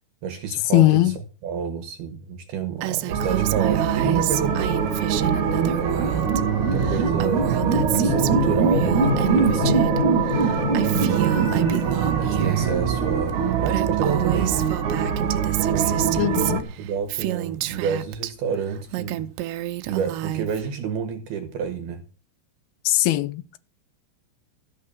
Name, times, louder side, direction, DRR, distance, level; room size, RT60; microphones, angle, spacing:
voice 1, 0.2-1.1 1.4-4.9 5.7-9.8 10.8-11.8 12.1-14.7 15.7-19.3 19.9-22.0, right 7 dB, 70° right, 3.0 m, -29 dB
voice 2, 0.7-1.2 16.2-16.7 22.8-23.6, left 16 dB, 75° left, 2.5 m, -20 dB
Female speech woman speaking, 2.8-6.4 6.7-10.0 10.3-12.7 13.3-13.4 13.6-18.3 18.7-20.7, right 15 dB, 85° right, 3.0 m, -29 dB
sound 1, 3.1-16.6, right 7 dB, 50° right, 2.9 m, -24 dB
sound 2, 4.7-13.9, right 1 dB, 20° left, 3.5 m, -25 dB
14.0 x 6.6 x 7.3 m
omnidirectional pair, 4.9 m